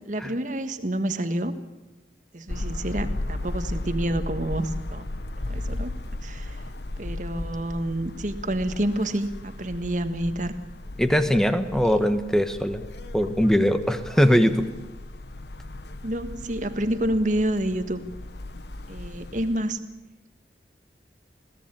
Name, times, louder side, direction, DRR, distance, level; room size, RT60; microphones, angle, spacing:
voice 1, 0.1-1.5 2.3-5.1 5.5-5.9 6.2-6.6 7.0-10.6 12.1-12.2 16.0-18.0 18.9-19.8, right 1 dB, 45° right, 9 dB, 1.5 m, -28 dB
sound 1, 2.5-19.6, left 1 dB, 70° left, 1.1 m, -36 dB
voice 2, 11.0-12.8 13.1-14.7, equal, 5° left, 9 dB, 1.2 m, -21 dB
22.0 x 16.5 x 9.0 m, 1.0 s
head